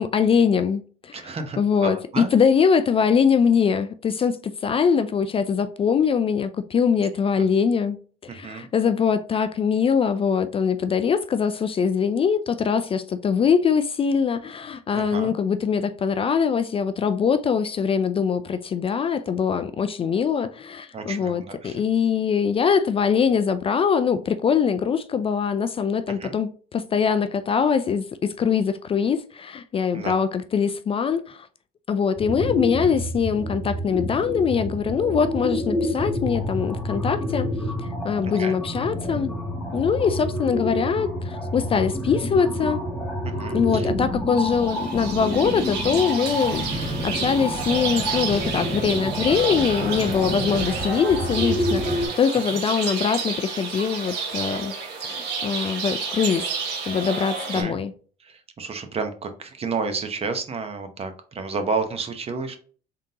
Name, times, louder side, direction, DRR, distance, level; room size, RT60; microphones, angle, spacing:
voice 1, 0.0-1.1 1.6-8.0 8.2-31.5 31.9-37.5 37.8-39.3 39.7-42.8 43.5-54.7 55.0-56.5 56.8-57.9, left 6 dB, 35° left, 0.4 m, -23 dB
voice 2, 1.1-2.3 7.4-7.5 8.3-8.7 14.9-15.3 20.9-21.8 26.1-26.4 29.9-30.2 38.2-38.6 43.2-43.9 52.5-52.6 57.5-57.8 58.2-62.6, right 4 dB, 35° right, 0.9 m, -31 dB
sound 1, 32.2-52.1, equal, 10° left, 2.0 m, -28 dB
sound 2, 44.3-57.6, right 5 dB, 85° right, 1.5 m, -30 dB
3.8 x 3.7 x 2.7 m
cardioid pair, 110°, 17 cm